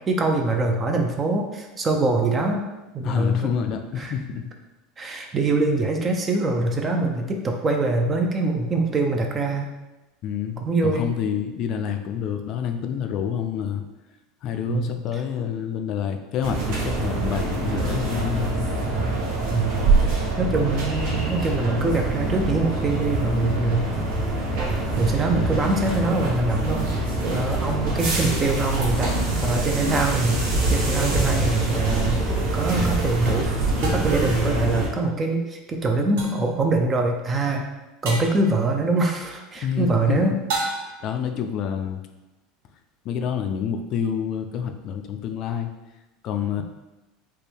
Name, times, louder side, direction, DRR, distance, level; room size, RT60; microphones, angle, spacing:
voice 1, 0.1-2.6 2.9-3.5 4.0-4.1 5.0-9.7 10.6-11.1 14.7-14.9 19.5-19.7 20.0-24.0 25.0-26.9 27.3-29.1 29.4-30.4 30.7-32.2 32.5-37.6 38.0-40.3, right 2 dB, 25° right, 3 dB, 0.4 m, -24 dB
voice 2, 3.0-4.5 10.2-13.8 14.4-18.7 39.6-40.3 41.0-42.0 43.0-45.7 46.2-46.6, left 8 dB, 45° left, 6 dB, 0.4 m, -28 dB
sound 1, 16.4-34.9, right 2 dB, 60° right, 1.1 m, -24 dB
sound 2, 31.7-31.9 33.8-34.3 36.2-36.5 38.1-38.4 40.5-41.1, right 2 dB, 80° right, 0.9 m, -30 dB
4.3 x 2.2 x 3.4 m, 1.0 s
supercardioid pair, 140°, 0 cm